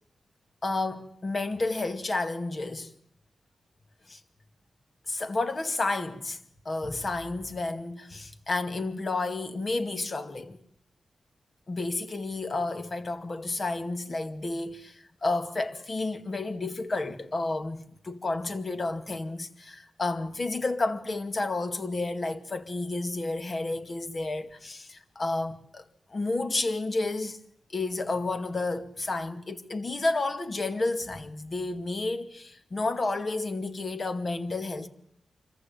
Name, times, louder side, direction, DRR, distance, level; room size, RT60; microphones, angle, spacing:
voice 1, 0.6-2.9 4.1-4.2 5.1-6.4 6.7-10.6 11.7-25.8 26.1-27.4 27.7-34.9, left 2 dB, 40° left, 2.2 m, -31 dB
25.5 x 14.5 x 9.3 m
cardioid pair, 80°, 0 cm